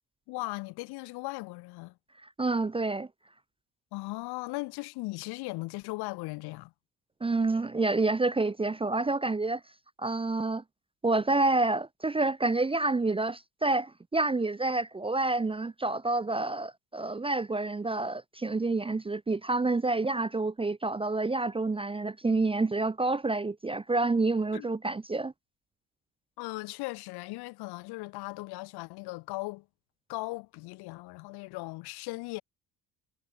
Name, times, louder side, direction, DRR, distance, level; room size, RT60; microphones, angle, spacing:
voice 1, 0.3-2.0 3.9-6.7 24.5-24.7 26.4-29.7 30.1-32.4, left 23 dB, 75° left, 3.1 m, -38 dB
voice 2, 2.4-3.1 7.2-9.6 10.0-10.6 11.0-25.3, right 3 dB, 15° right, 0.7 m, -28 dB
supercardioid pair, 70°, 39 cm